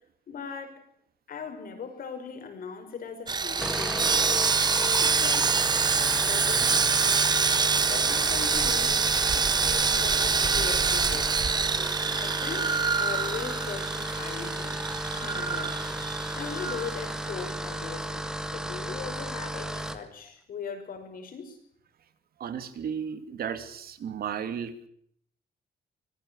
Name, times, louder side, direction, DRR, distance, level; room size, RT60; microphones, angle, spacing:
voice 1, 0.3-0.9 1.3-4.3 5.0-5.6 5.9-7.3 7.9-9.1 9.4-11.4 12.1-14.8 15.1-15.8 16.3-18.3 18.5-21.6, left 6 dB, 55° left, 5.9 m, -39 dB
Sawing, 3.3-17.5 17.8-18.0 18.4-18.5, right 5 dB, 25° right, 0.8 m, -26 dB
sound 1, 3.6-20.0, right 1 dB, 5° right, 1.8 m, -34 dB
voice 2, 22.4-24.9, right 8 dB, 60° right, 2.8 m, -34 dB
25.5 x 20.5 x 6.4 m
wide cardioid pair, 175°, 18 cm